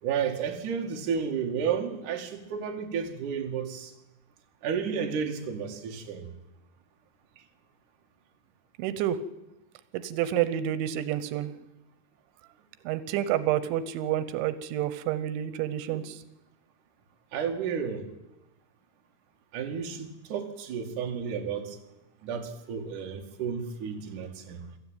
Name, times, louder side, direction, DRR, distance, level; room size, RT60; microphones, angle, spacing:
voice 1, 0.0-3.9 4.6-6.3 15.9-16.1 17.3-18.1 19.5-21.8 22.2-24.6, right 7 dB, 50° right, 2 dB, 3.2 m, -32 dB
voice 2, 8.8-9.2 9.9-11.5 12.9-16.2, right 11 dB, 90° right, 13 dB, 3.3 m, -29 dB
24.0 x 14.0 x 9.2 m, 0.94 s
omnidirectional pair, 5.2 m